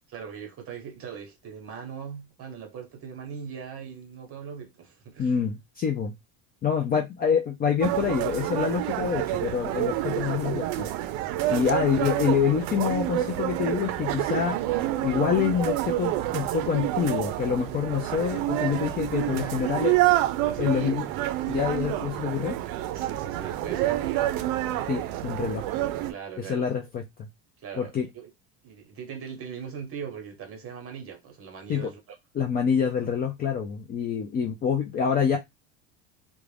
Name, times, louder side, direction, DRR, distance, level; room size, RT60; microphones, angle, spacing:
voice 1, 0.1-5.5 11.4-11.7 19.2-20.9 22.9-24.5 26.1-26.7 27.6-28.3 28.6-32.0, right 7 dB, 35° right, 1.1 m, -40 dB
voice 2, 5.2-6.1 6.6-10.9 11.5-14.6 15.0-19.9 20.6-21.0 21.5-22.6 24.9-25.7 26.4-27.0 27.8-28.1 31.7-31.9 32.3-35.4, left 7 dB, 25° left, 0.3 m, -26 dB
sound 1, 7.8-26.1, right 14 dB, 75° right, 0.5 m, -28 dB
2.4 x 2.2 x 3.2 m
cardioid pair, 140°, 36 cm